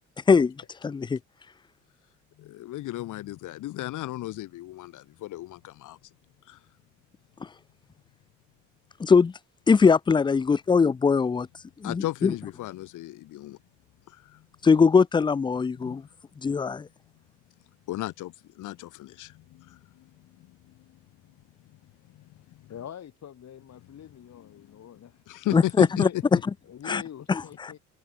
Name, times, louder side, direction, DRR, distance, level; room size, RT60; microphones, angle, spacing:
voice 1, 0.8-1.2 9.0-9.3 9.7-11.5 11.8-12.3 14.6-16.0 16.4-16.9 25.5-26.1 26.9-27.0, left 5 dB, 15° left, 0.3 m, -21 dB
voice 2, 2.4-6.0 6.5-6.6 11.8-13.6 14.1-14.4 15.8-16.0 17.9-20.5 22.1-22.2 22.6-22.7 24.4-24.8 25.3-26.2, left 16 dB, 85° left, 1.7 m, -35 dB
voice 3, 22.7-25.2 25.8-26.2 26.6-27.8, left 9 dB, 60° left, 3.8 m, -43 dB
cardioid pair, 90°, 30 cm